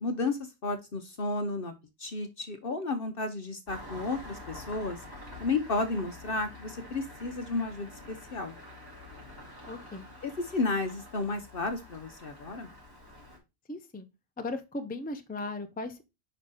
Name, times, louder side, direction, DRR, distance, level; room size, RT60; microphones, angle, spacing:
voice 1, 0.0-1.7 2.0-5.0 5.4-8.5 10.2-12.7, left 3 dB, 50° left, 7 dB, 0.8 m, -32 dB
Engine starting, 3.7-13.4, left 1 dB, 15° right, 3.2 m, -47 dB
voice 2, 9.7-10.1 13.7-14.1 14.4-16.0, left 2 dB, 10° left, 5 dB, 0.6 m, -37 dB
5.4 x 5.0 x 4.1 m, 0.24 s
omnidirectional pair, 1.5 m